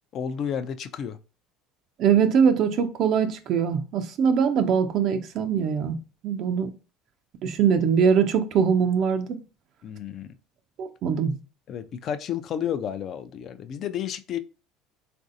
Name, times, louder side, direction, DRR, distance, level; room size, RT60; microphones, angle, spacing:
voice 1, 0.1-1.2 9.8-10.3 11.7-14.4, left 9 dB, 50° left, 0.4 m, -31 dB
voice 2, 2.0-6.0 6.2-6.7 7.4-9.4 10.8-11.4, right 7 dB, 55° right, 0.3 m, -22 dB
3.2 x 2.5 x 2.6 m
supercardioid pair, 90°, 0 cm